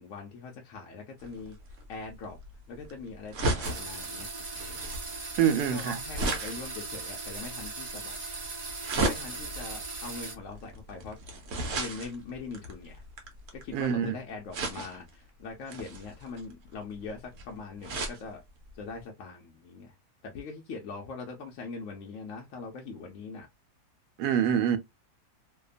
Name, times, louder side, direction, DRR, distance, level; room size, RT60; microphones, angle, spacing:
voice 1, 0.0-1.6 1.9-2.4 2.7-4.3 5.5-8.2 9.0-11.2 11.7-13.0 13.6-18.4 18.7-19.9 20.2-23.5, left 4 dB, 65° left, 0.9 m, -42 dB
sound 1, 1.2-13.8 14.5-15.2 15.7-18.2 18.7-18.8 19.0-19.1, right 2 dB, 60° right, 1.0 m, -35 dB
sound 2, 3.6-10.3, right 3 dB, 45° right, 0.4 m, -39 dB
voice 2, 5.4-6.0 13.7-14.1 24.2-24.8, right 9 dB, 85° right, 1.1 m, -25 dB
2.8 x 2.2 x 2.3 m
omnidirectional pair, 1.6 m